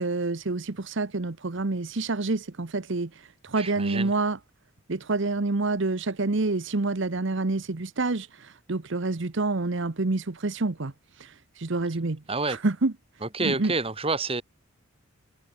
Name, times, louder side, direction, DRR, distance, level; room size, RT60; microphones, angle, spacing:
voice 1, 0.0-4.4 4.9-10.9 11.2-12.2 12.5-12.9 13.4-13.7, right 3 dB, 60° right, 1.0 m, -28 dB
voice 2, 3.6-4.1 12.3-12.6 13.2-14.4, right 3 dB, 25° right, 2.0 m, -28 dB
head